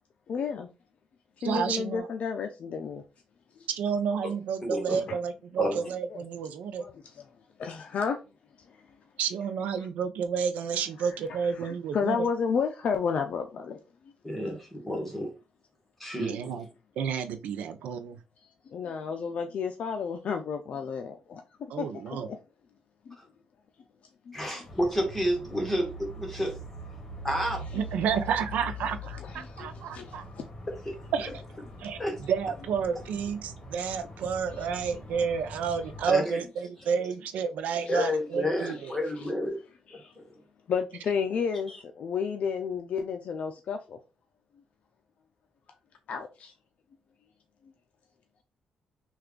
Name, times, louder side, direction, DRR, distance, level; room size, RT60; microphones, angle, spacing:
voice 1, 0.3-0.7 1.4-3.0 4.9-5.2 6.8-6.9 7.6-8.2 11.6-13.8 18.7-21.9 22.3-22.4 23.1-23.2 24.3-24.4 29.3-30.4 37.9-38.0 39.9-40.1 40.7-44.0 46.1-46.5, left 6 dB, 65° left, 0.4 m, -31 dB
voice 2, 1.4-2.1 3.7-6.8 9.2-12.3 16.2-16.7 17.0-18.2 21.7-22.3 27.7-30.2 31.1-31.3 31.8-38.9, right 6 dB, 85° right, 0.5 m, -30 dB
voice 3, 4.6-5.0 5.6-5.8 14.2-15.3 16.0-16.4 24.3-26.6 27.2-27.7 30.8-30.9 32.0-32.1 36.1-36.4 37.9-39.6 39.9-40.3, equal, 5° left, 1.4 m, -30 dB
sound 1, 24.6-36.1, equal, 30° left, 1.1 m, -43 dB
3.3 x 2.4 x 3.7 m
cardioid pair, 100°, 2 cm